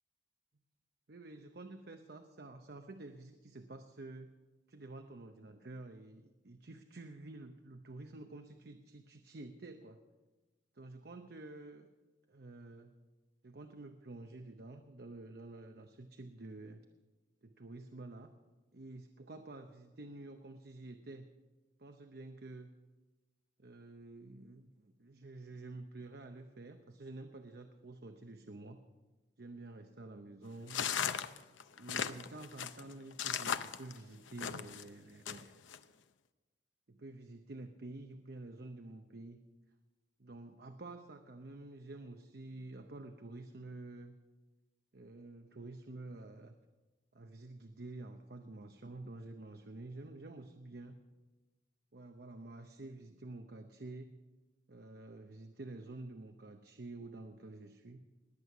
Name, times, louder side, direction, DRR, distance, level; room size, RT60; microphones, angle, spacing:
voice 1, 1.1-4.3 4.7-10.0 10.7-11.9 12.3-12.9 13.4-16.8 17.4-18.3 18.7-21.3 21.8-22.7 23.6-28.8 29.4-30.8 31.8-35.5 36.9-39.4 40.2-44.2 44.9-46.6 47.1-51.0 51.9-54.1 54.7-58.0, right 2 dB, 55° right, 6 dB, 0.8 m, -49 dB
sound 1, 30.7-34.8 35.3-35.8, left 8 dB, 85° left, 0.7 m, -37 dB
20.5 x 8.3 x 6.0 m, 1.2 s
head